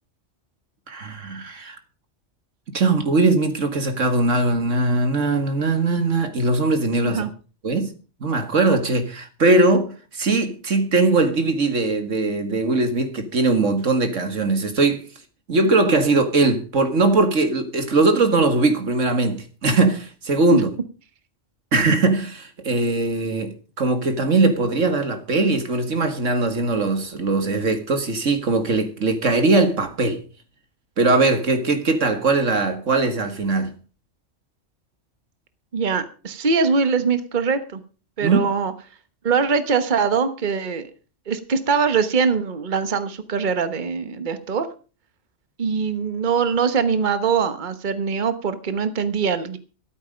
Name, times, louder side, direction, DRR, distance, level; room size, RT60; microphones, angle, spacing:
voice 1, 0.9-1.8 2.7-7.2 7.6-7.9 8.2-15.1 15.5-20.7 21.7-30.2 31.0-33.7 38.2-38.4, right 3 dB, 85° right, 2.3 m, -20 dB
voice 2, 35.7-37.8 38.2-38.7 39.2-40.8 41.3-44.7 45.6-49.6, right 5 dB, 40° right, 1.3 m, -22 dB
13.5 x 12.5 x 5.2 m
omnidirectional pair, 1.3 m